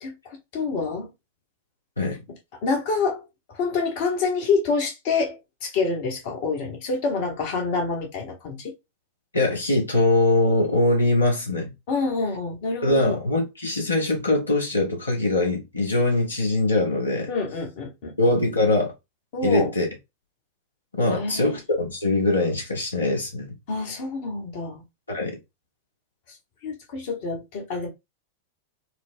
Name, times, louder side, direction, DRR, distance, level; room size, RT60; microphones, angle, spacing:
voice 1, 0.0-1.1 2.6-8.7 11.9-13.2 17.3-18.1 19.3-19.7 21.1-21.6 23.7-24.8 26.6-27.9, left 4 dB, 50° left, 0.9 m, -27 dB
voice 2, 9.3-11.7 12.8-17.3 18.2-18.9 19.4-19.9 21.0-23.6 25.1-25.4, left 2 dB, 80° left, 1.0 m, -22 dB
4.4 x 2.0 x 2.4 m
figure-of-eight pair, 90°, 0 cm